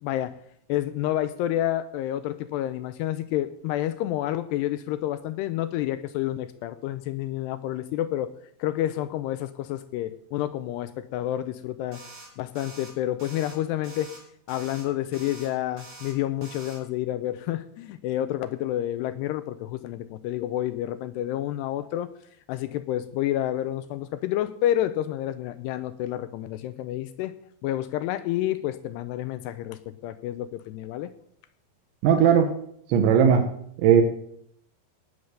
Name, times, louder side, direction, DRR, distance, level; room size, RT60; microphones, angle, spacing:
voice 1, 0.0-0.4 0.7-8.3 8.6-12.0 12.4-14.1 14.5-22.1 22.5-27.3 27.6-31.1, left 13 dB, 80° left, 12 dB, 2.6 m, -29 dB
sound 1, 11.9-12.3 12.6-12.9 13.2-13.6 13.8-14.2 14.5-14.8 15.1-15.5 15.8-16.1 16.4-16.8, right 3 dB, 45° right, 5.7 m, -45 dB
voice 2, 32.0-32.5 32.9-33.5 33.8-34.0, right 8 dB, 90° right, 4 dB, 3.5 m, -18 dB
18.5 x 7.3 x 6.5 m, 0.67 s
omnidirectional pair, 5.1 m